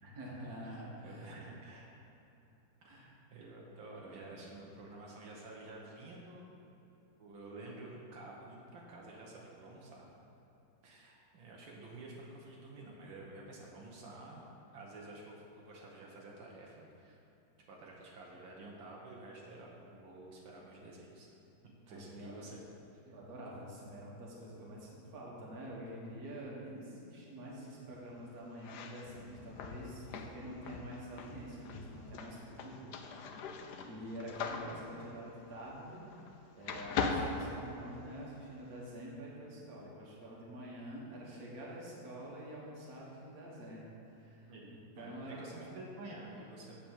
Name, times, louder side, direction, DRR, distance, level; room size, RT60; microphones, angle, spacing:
voice 1, 0.0-1.4 2.8-3.1 21.9-22.5 23.1-33.4 33.8-36.0 36.6-44.5 45.0-45.7, right 1 dB, 50° right, -4 dB, 1.9 m, -47 dB
voice 2, 0.6-2.1 2.8-6.5 7.2-10.1 10.8-14.4 14.7-17.2 17.7-21.3 21.9-22.6 44.5-46.8, right 2 dB, 85° right, -3 dB, 1.9 m, -50 dB
sound 1, 28.5-36.3 36.6-38.3, left 5 dB, 70° left, 1.1 m, -40 dB
7.5 x 5.1 x 7.3 m, 3.0 s
omnidirectional pair, 2.1 m